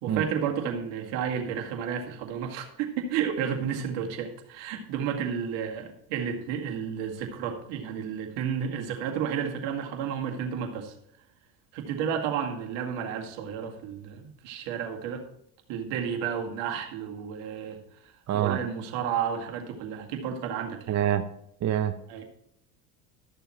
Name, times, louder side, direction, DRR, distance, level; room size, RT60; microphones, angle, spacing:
voice 1, 0.0-10.9 11.7-15.3 15.7-17.8 18.0-21.0 22.1-22.3, right 7 dB, 65° right, 3 dB, 2.1 m, -32 dB
voice 2, 18.3-18.6 20.9-21.3 21.6-21.9, right 11 dB, 35° right, 10 dB, 0.7 m, -25 dB
13.0 x 6.9 x 4.4 m, 0.73 s
hypercardioid pair, 80°, 46 cm